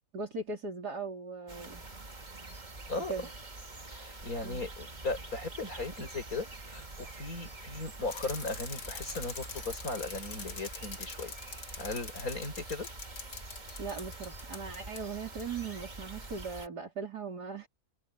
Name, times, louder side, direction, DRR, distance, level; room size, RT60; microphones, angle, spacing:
voice 1, 0.1-1.8 3.1-3.3 4.4-4.6 13.8-17.7, right 4 dB, 75° right, 4.1 m, -39 dB
sound 1, 1.5-16.7, right 2 dB, 30° right, 1.9 m, -46 dB
voice 2, 3.9-11.3 11.8-12.9, left 3 dB, 60° left, 6.1 m, -37 dB
Bicycle, 8.1-15.0 15.4-15.5, left 5 dB, 80° left, 2.6 m, -45 dB
omnidirectional pair, 1.7 m